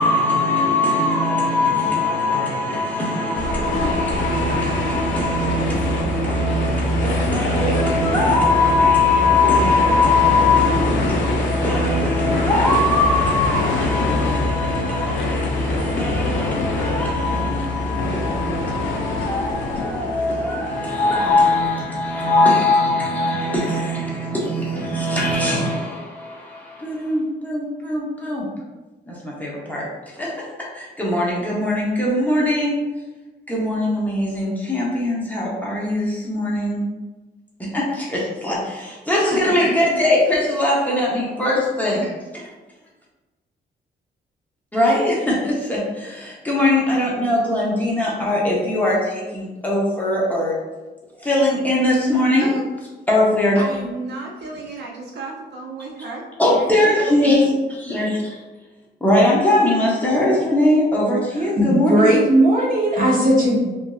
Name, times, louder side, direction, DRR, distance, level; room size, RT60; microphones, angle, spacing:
voice 1, 0.0-28.5 29.1-29.8 30.1-30.4 30.7-32.8 33.5-36.9 37.6-42.0 44.7-50.6 51.2-52.5 53.1-53.6 56.4-58.4 59.0-62.1, left 2 dB, 10° left, 0.8 m, -21 dB
sound 1, 3.3-22.1, left 2 dB, 80° left, 0.5 m, -25 dB
voice 2, 53.6-57.2, right 3 dB, 65° right, 0.5 m, -33 dB
voice 3, 61.6-63.7, right 1 dB, 45° right, 1.0 m, -17 dB
3.1 x 2.6 x 2.3 m
cardioid pair, 115°, 19 cm